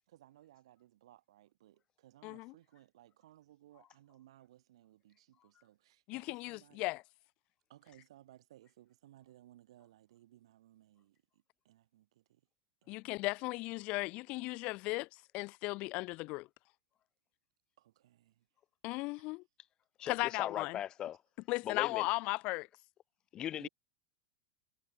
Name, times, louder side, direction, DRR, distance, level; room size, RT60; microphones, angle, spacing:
voice 1, 0.1-6.9 7.7-12.4 12.8-13.3 17.8-18.5 19.2-19.4 20.2-20.4 23.6-23.7, right 14 dB, 80° right, 5.3 m, -62 dB
voice 2, 2.2-2.5 6.1-7.0 12.9-15.1 15.3-16.5 18.8-19.4 20.1-20.8 21.5-22.7, left 24 dB, 45° left, 1.2 m, -36 dB
voice 3, 20.0-21.2 21.6-22.1 23.3-23.7, left 11 dB, 30° left, 1.5 m, -39 dB
supercardioid pair, 150°, 3 cm